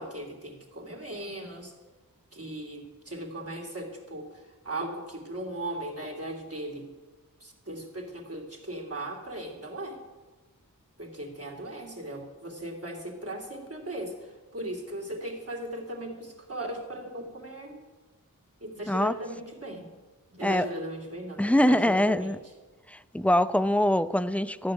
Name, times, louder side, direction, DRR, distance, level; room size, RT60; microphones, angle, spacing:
voice 1, 0.0-1.7 2.3-6.9 7.4-10.0 11.0-17.8 18.6-19.9 20.3-22.3, right 1 dB, 45° right, 1 dB, 3.1 m, -38 dB
voice 2, 21.4-22.4 22.9-24.7, left 1 dB, 5° left, 14 dB, 0.5 m, -24 dB
13.5 x 6.3 x 9.8 m, 1.3 s
wide cardioid pair, 50°, 35 cm